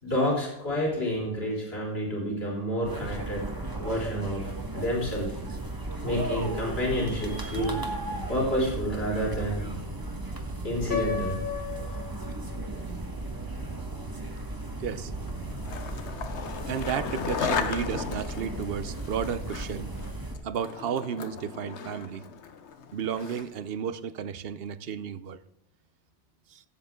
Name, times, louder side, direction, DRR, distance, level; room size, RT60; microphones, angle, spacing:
voice 1, 0.0-3.4 3.8-5.3 6.0-7.8 8.3-9.7 10.6-11.4, equal, 60° left, -3 dB, 3.9 m, -29 dB
sound 1, 2.8-20.4, right 2 dB, 20° right, 1.3 m, -35 dB
Piano, 10.9-12.9, left 8 dB, 20° left, 1.3 m, -34 dB
voice 2, 14.8-15.3 16.3-16.4 16.7-19.9 20.4-22.2 22.9-25.4 26.5-26.6, right 8 dB, 65° right, 14 dB, 0.9 m, -33 dB
Skateboard, 15.3-23.6, left 6 dB, 80° left, 1.2 m, -36 dB
15.5 x 7.9 x 3.7 m, 0.83 s
omnidirectional pair, 1.1 m